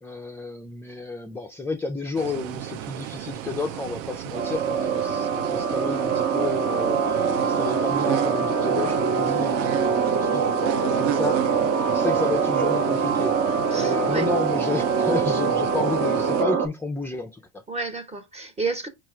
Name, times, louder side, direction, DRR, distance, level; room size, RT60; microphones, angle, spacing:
voice 1, 0.0-11.5 11.9-17.6, left 3 dB, 5° left, 0.4 m, -31 dB
sound 1, 2.1-16.4, right 11 dB, 90° right, 0.6 m, -34 dB
sound 2, 4.3-16.7, right 6 dB, 35° right, 1.0 m, -24 dB
voice 2, 13.7-14.3 17.7-18.9, right 3 dB, 15° right, 1.2 m, -31 dB
4.7 x 2.5 x 4.4 m
supercardioid pair, 110°, 36 cm